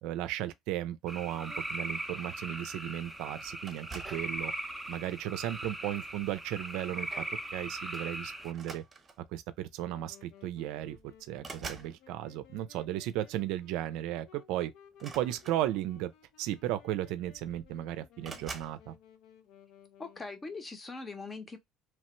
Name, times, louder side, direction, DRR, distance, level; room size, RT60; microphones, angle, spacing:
voice 1, 0.0-4.5 4.9-7.2 7.5-8.8 9.2-14.7 15.0-16.1 16.4-18.9, right 13 dB, 75° right, 0.4 m, -35 dB
sound 1, 1.1-8.5, right 1 dB, 5° right, 0.6 m, -39 dB
sound 2, 3.7-4.3 5.2-5.5 7.0-7.1 7.4-7.6 8.5-9.4 10.4-10.5 10.8-12.0 14.9-16.0 16.9-17.0 17.2-17.8 18.2-18.8, right 4 dB, 30° right, 0.9 m, -46 dB
Wind instrument woodwind instrument, 9.8-20.7, left 9 dB, 70° left, 0.5 m, -59 dB
voice 2, 20.0-21.6, left 3 dB, 25° left, 0.8 m, -41 dB
3.0 x 2.1 x 3.0 m
supercardioid pair, 90°, 0 cm